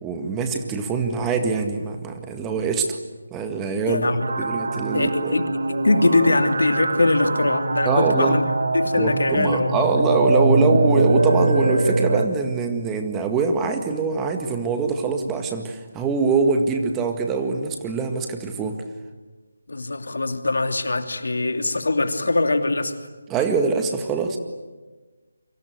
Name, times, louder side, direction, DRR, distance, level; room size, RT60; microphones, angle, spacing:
voice 1, 0.0-3.0 3.3-5.4 7.9-8.4 8.9-18.8 23.3-24.4, right 4 dB, 10° right, 5 dB, 1.9 m, -24 dB
voice 2, 3.9-4.5 4.9-9.8 19.7-22.9, left 2 dB, 70° left, 6 dB, 2.9 m, -22 dB
sound 1, 4.2-12.3, right 2 dB, 60° right, 2.4 m, -22 dB
29.5 x 24.5 x 8.1 m, 1.3 s
figure-of-eight pair, 155°, 0 cm